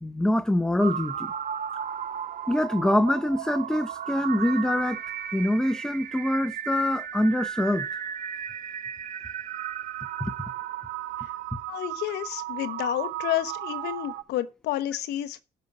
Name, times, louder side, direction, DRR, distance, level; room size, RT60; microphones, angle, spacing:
voice 1, 0.0-1.3 2.5-5.0 5.3-7.9, left 1 dB, 5° left, 0.7 m, -24 dB
sound 1, 0.8-14.2, right 9 dB, 55° right, 0.9 m, -35 dB
voice 2, 11.7-15.4, left 13 dB, 80° left, 1.0 m, -30 dB
10.5 x 5.5 x 8.6 m
cardioid pair, 110°, 17 cm